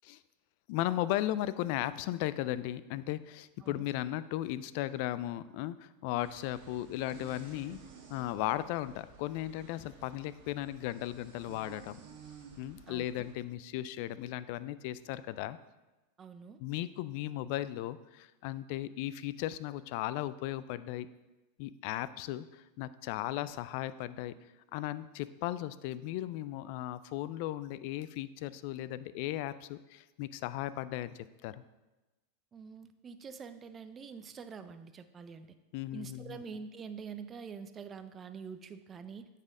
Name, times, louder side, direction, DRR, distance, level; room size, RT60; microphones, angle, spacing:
voice 1, 0.7-7.8 8.1-12.0 12.6-15.6 16.6-21.1 21.6-24.3 24.7-31.6 35.7-36.4, left 14 dB, 60° left, 16 dB, 0.3 m, -36 dB
sound 1, 6.2-13.3, right 6 dB, 60° right, 1.4 m, -54 dB
voice 2, 12.9-13.3 16.2-16.6 32.5-35.5 35.9-39.3, right 6 dB, 25° right, 11 dB, 0.5 m, -46 dB
8.6 x 4.2 x 3.7 m, 1.1 s
hypercardioid pair, 105°, 0 cm